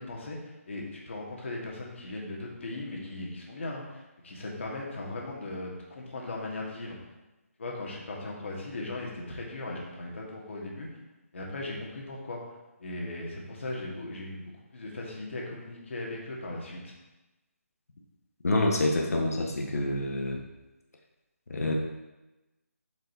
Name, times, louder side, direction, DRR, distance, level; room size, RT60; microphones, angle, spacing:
voice 1, 0.0-7.0 7.6-10.9 11.3-16.9, left 2 dB, 55° left, -2 dB, 1.7 m, -38 dB
voice 2, 18.4-20.4 21.5-21.7, left 2 dB, 75° left, 1 dB, 1.2 m, -27 dB
7.9 x 5.2 x 2.8 m, 1.0 s
hypercardioid pair, 170°, 8 cm